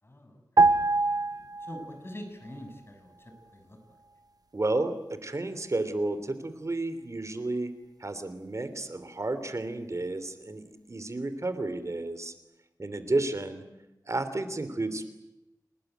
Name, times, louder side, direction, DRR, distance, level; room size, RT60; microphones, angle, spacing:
voice 1, 0.0-0.8 1.6-4.0 12.9-13.0, left 1 dB, 35° left, 5 dB, 7.1 m, -45 dB
sound 1, 0.6-2.2 2.5-2.7, right 3 dB, 65° right, 1.1 m, -24 dB
voice 2, 4.5-7.7 8.0-10.6 10.9-12.3 12.8-13.6 14.0-15.0, right 2 dB, 45° right, 11 dB, 3.1 m, -31 dB
29.5 x 19.5 x 9.3 m, 0.95 s
wide cardioid pair, 75°, 7 cm